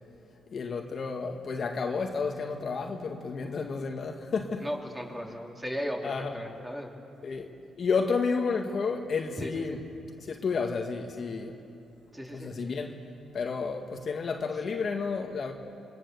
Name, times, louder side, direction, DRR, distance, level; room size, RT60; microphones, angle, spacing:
voice 1, 0.5-4.7 6.0-6.4 7.2-7.5 7.8-9.8 10.3-11.5 12.3-13.0 13.3-15.5, left 5 dB, 50° left, 1.8 m, -31 dB
voice 2, 4.6-7.0 9.4-9.8 12.1-12.5, equal, 10° right, 3.8 m, -36 dB
26.5 x 23.5 x 7.0 m
cardioid pair, 90°, 0 cm